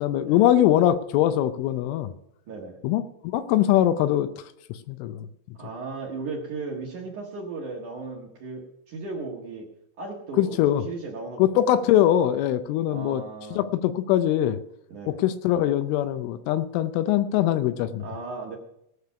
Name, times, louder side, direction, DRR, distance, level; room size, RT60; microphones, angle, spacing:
voice 1, 0.0-2.1 2.8-3.0 3.3-4.3 4.9-5.3 10.4-10.8 11.4-13.2 13.5-14.6 15.2-18.0, left 12 dB, 80° left, 11 dB, 2.9 m, -22 dB
voice 2, 2.5-2.8 5.6-9.7 10.0-10.6 10.9-11.7 12.9-13.7 14.9-15.2 18.0-18.6, right 3 dB, 70° right, -2 dB, 1.9 m, -36 dB
18.5 x 6.7 x 5.8 m, 0.78 s
omnidirectional pair, 6.0 m